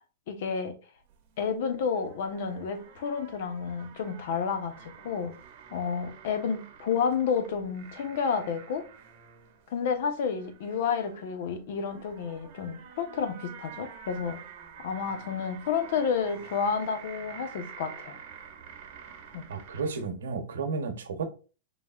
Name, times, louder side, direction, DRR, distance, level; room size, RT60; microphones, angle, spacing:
voice 1, 0.3-0.8 1.4-5.3 5.7-8.8 9.7-14.4 14.8-18.2 19.3-19.5, left 6 dB, 65° left, 0.9 m, -30 dB
sound 1, 1.0-20.1, right 7 dB, 55° right, 0.9 m, -49 dB
voice 2, 19.5-21.3, right 4 dB, 85° right, 0.9 m, -32 dB
4.0 x 3.2 x 2.4 m
hypercardioid pair, 125°, 0 cm